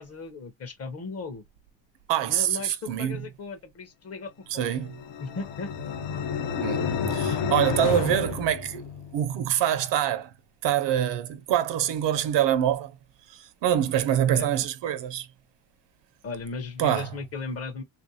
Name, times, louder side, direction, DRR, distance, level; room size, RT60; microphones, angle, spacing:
voice 1, 0.0-1.4 2.3-4.7 5.2-5.7 14.3-14.5 16.2-17.8, left 4 dB, 35° left, 0.6 m, -36 dB
voice 2, 2.1-3.2 4.5-4.9 6.6-8.8 9.1-10.3 10.6-12.9 13.3-15.3 16.8-17.1, right 10 dB, 70° right, 0.7 m, -25 dB
sound 1, 4.7-9.3, left 6 dB, 65° left, 0.8 m, -30 dB
3.4 x 2.5 x 2.6 m
cardioid pair, 150°, 45 cm